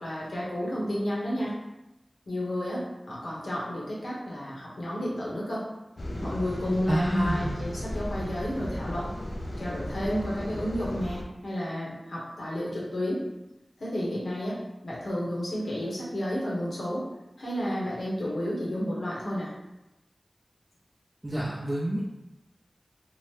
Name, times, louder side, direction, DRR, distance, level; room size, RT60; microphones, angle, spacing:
voice 1, 0.0-1.5 2.3-5.6 6.2-9.1 9.6-13.2 13.8-17.0 17.4-19.5, equal, 80° left, -6 dB, 0.9 m, -31 dB
sound 1, 6.0-11.2, left 1 dB, 60° left, 0.4 m, -35 dB
voice 2, 6.9-7.6 21.2-22.0, right 1 dB, 20° right, -6 dB, 0.4 m, -28 dB
2.8 x 2.1 x 3.1 m, 0.97 s
wide cardioid pair, 75°, 0 cm